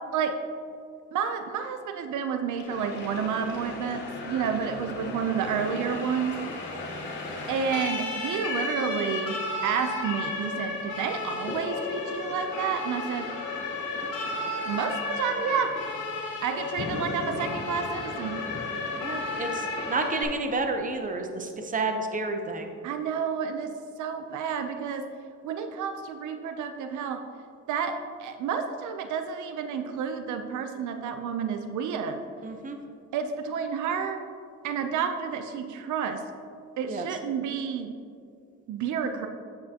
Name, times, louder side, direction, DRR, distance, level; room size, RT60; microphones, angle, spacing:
voice 1, 1.1-6.4 7.5-9.4 9.6-13.3 14.7-15.7 16.4-18.4 22.8-23.7 24.0-25.1 25.4-27.2 27.7-32.2 33.1-34.2 34.6-36.2 36.8-37.9 38.7-39.3, right 7 dB, 75° right, 7 dB, 0.6 m, -30 dB
Siren, 2.6-20.2, left 3 dB, 90° left, 1.8 m, -34 dB
sound 1, 2.7-20.1, left 2 dB, 35° left, 0.8 m, -40 dB
voice 2, 19.0-22.7 32.4-32.8 36.9-37.1, right 3 dB, 25° right, 5 dB, 0.8 m, -30 dB
8.5 x 7.6 x 2.9 m, 2.3 s
cardioid pair, 90°, 30 cm